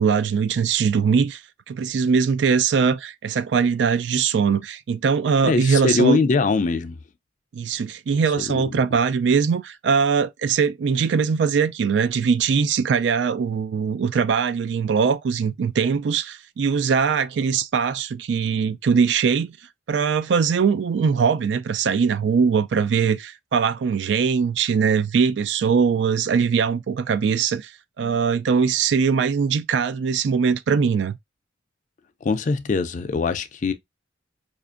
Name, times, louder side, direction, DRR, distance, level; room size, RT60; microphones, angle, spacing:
voice 1, 0.0-1.4 1.7-6.2 7.5-19.6 19.9-27.7 28.0-31.2, right 6 dB, 65° right, 0.3 m, -21 dB
voice 2, 5.4-7.0 8.5-8.6 32.2-33.7, left 3 dB, 40° left, 0.4 m, -22 dB
5.0 x 2.5 x 2.4 m
head